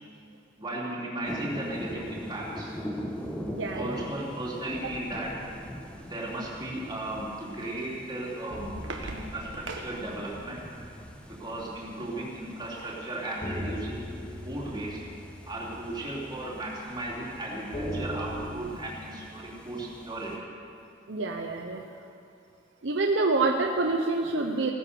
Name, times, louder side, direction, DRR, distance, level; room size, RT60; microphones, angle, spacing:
voice 1, 0.6-2.8 3.7-5.3 6.1-8.7 9.0-10.6 11.3-14.0 14.4-15.0 15.5-20.4, right 1 dB, 25° right, -6 dB, 3.5 m, -35 dB
sound 1, 1.2-20.4, equal, 5° left, 1.2 m, -43 dB
voice 2, 3.5-4.0 21.1-21.8 22.8-24.7, right 3 dB, 70° right, 2 dB, 0.9 m, -27 dB
sound 2, 4.6-6.6 7.0-7.2 7.6-7.7 8.5-12.4 12.7-12.8 13.4-18.6, equal, 30° left, 2.8 m, -40 dB
sound 3, 8.5-10.7 12.2-13.1 13.6-13.7 14.0-14.2, right 3 dB, 85° right, 1.6 m, -43 dB
17.0 x 10.0 x 7.0 m, 2.5 s
head